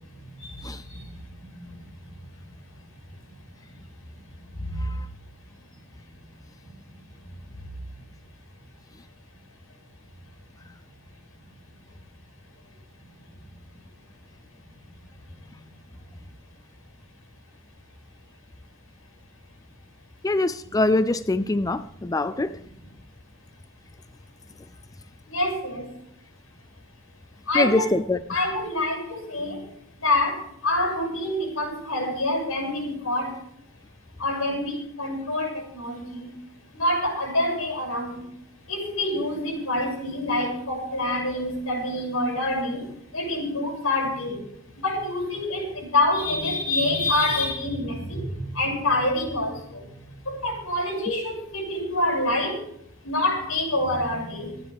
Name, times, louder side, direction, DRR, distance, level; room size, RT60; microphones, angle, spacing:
voice 1, 0.2-2.1 4.4-5.0 6.6-6.7 20.7-20.8 22.0-22.1 22.6-22.9 25.3-25.9 27.5-27.9 28.3-29.7 30.0-33.4 34.2-36.3 36.7-38.3 38.7-49.9 50.2-52.7 53.0-54.6, left 1 dB, 80° left, 1 dB, 6.7 m, -27 dB
voice 2, 20.2-22.5 27.6-28.2, left 2 dB, 15° left, 13 dB, 0.4 m, -23 dB
25.5 x 9.8 x 3.5 m, 0.70 s
head